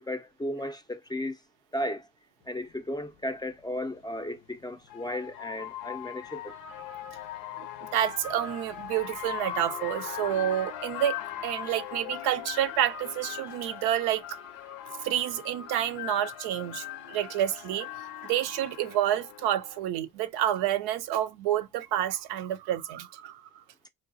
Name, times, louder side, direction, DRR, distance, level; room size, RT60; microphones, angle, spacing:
voice 1, 0.0-1.4 1.7-2.1 2.5-6.5, left 1 dB, 10° left, 0.4 m, -34 dB
sound 1, 2.7-2.8 4.2-19.8, left 10 dB, 80° left, 0.6 m, -40 dB
voice 2, 7.8-11.2 11.4-14.4 15.0-17.9 18.2-23.4, right 11 dB, 70° right, 0.5 m, -29 dB
3.9 x 2.3 x 2.6 m
hypercardioid pair, 55°, 40 cm